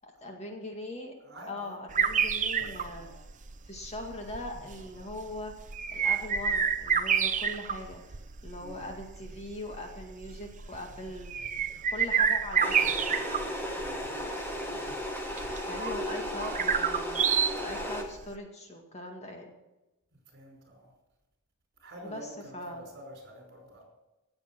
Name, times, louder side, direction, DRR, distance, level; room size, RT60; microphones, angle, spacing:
voice 1, 0.0-1.1 1.5-3.1 3.7-5.5 5.9-11.6 11.9-13.1 15.7-19.5 22.0-22.8, left 1 dB, 30° left, 2 dB, 2.1 m, -41 dB
voice 2, 1.2-2.7 2.9-3.1 8.6-8.9 13.8-14.2 20.3-20.9 21.8-23.8, equal, 55° right, 1 dB, 5.3 m, -48 dB
sound 1, 1.9-18.2, right 7 dB, 35° right, 0.6 m, -30 dB
sound 2, 12.6-18.0, equal, 10° left, 1.8 m, -35 dB
17.5 x 7.8 x 6.1 m, 1.0 s
head